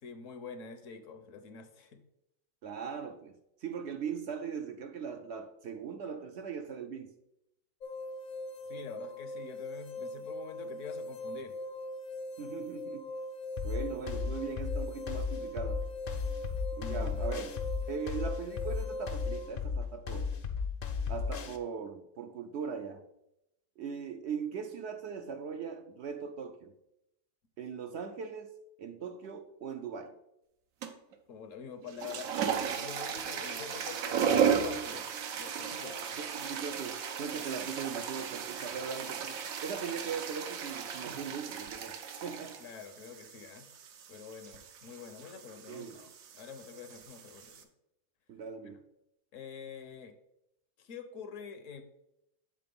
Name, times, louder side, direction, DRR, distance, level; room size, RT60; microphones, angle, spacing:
voice 1, 0.0-2.0 8.6-11.6 16.8-17.2 31.3-36.2 38.7-39.1 42.6-43.7 44.1-47.7 48.6-48.7 49.3-50.2 50.8-51.8, left 6 dB, 70° left, 1.1 m, -47 dB
voice 2, 2.6-7.1 12.4-13.1 13.6-15.8 16.8-17.6 17.9-20.3 21.1-23.0 23.8-26.7 27.6-28.5 28.8-30.2 34.2-34.8 35.7-35.8 36.2-39.4 39.6-42.6 45.7-46.0 48.3-48.8, right 6 dB, 65° right, 0.8 m, -40 dB
sound 1, 7.8-19.5, left 1 dB, 90° left, 1.2 m, -41 dB
sound 2, 13.6-21.6, left 5 dB, 50° left, 0.7 m, -34 dB
sound 3, 30.8-31.1 31.8-47.6, right 7 dB, 80° right, 1.2 m, -35 dB
7.7 x 3.9 x 5.3 m
omnidirectional pair, 1.4 m